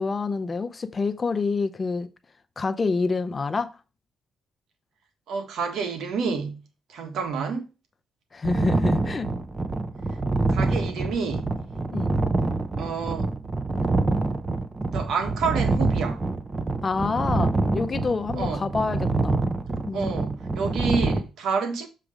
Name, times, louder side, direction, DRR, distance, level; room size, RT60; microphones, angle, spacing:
voice 1, 0.0-2.1 2.6-3.7 8.3-9.3 11.9-12.1 16.8-19.4 19.9-20.1, left 4 dB, 30° left, 0.6 m, -27 dB
voice 2, 5.3-6.6 6.9-7.7 10.5-11.5 12.8-13.3 14.9-16.2 18.4-18.7 19.9-21.9, right 5 dB, 75° right, 1.6 m, -29 dB
sound 1, 8.4-21.2, right 3 dB, 25° right, 0.8 m, -26 dB
7.2 x 3.3 x 5.0 m
cardioid pair, 90°, 0 cm